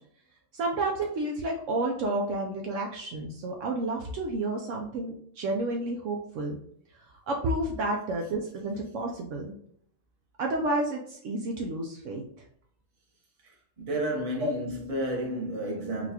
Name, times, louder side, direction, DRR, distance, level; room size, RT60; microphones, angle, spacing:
voice 1, 0.5-6.6 7.1-9.5 10.4-12.2 14.4-14.5, right 2 dB, 70° right, 0.9 m, -30 dB
voice 2, 13.4-16.1, right 1 dB, 30° right, 0.9 m, -32 dB
4.0 x 2.3 x 2.8 m
omnidirectional pair, 1.4 m